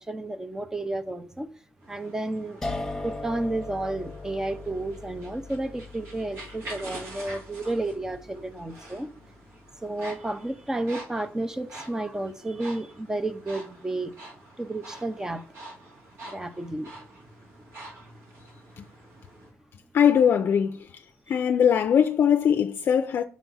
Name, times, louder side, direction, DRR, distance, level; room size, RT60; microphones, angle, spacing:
voice 1, 0.0-1.5 1.9-2.6 3.0-9.1 9.8-14.1 14.6-15.4 16.3-16.9, right 2 dB, 10° right, 0.6 m, -31 dB
sound 1, 1.8-19.5, right 2 dB, 80° right, 2.3 m, -46 dB
sound 2, 2.6-9.6, left 2 dB, 10° left, 0.8 m, -39 dB
voice 2, 19.9-20.9 21.3-23.2, left 8 dB, 55° left, 0.5 m, -21 dB
6.2 x 3.5 x 5.4 m
cardioid pair, 130°, 5 cm